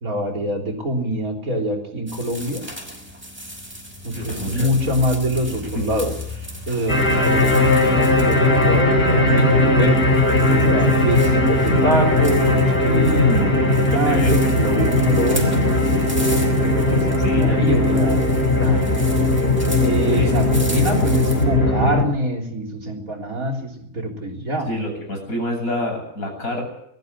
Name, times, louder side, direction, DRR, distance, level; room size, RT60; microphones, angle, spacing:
voice 1, 0.0-2.6 4.0-15.9 16.6-18.9 19.7-24.7, equal, 80° right, 2 dB, 4.2 m, -25 dB
sound 1, 2.1-21.4, left 1 dB, 10° right, 5.8 m, -36 dB
voice 2, 4.1-4.9 5.7-5.9 13.2-13.6 13.9-14.3 16.9-17.6 20.0-20.3 24.7-26.6, left 1 dB, 90° left, 2 dB, 8.6 m, -27 dB
sound 2, 6.9-22.0, left 2 dB, 45° left, 4.0 m, -18 dB
21.5 x 14.5 x 9.8 m, 0.76 s
omnidirectional pair, 1.4 m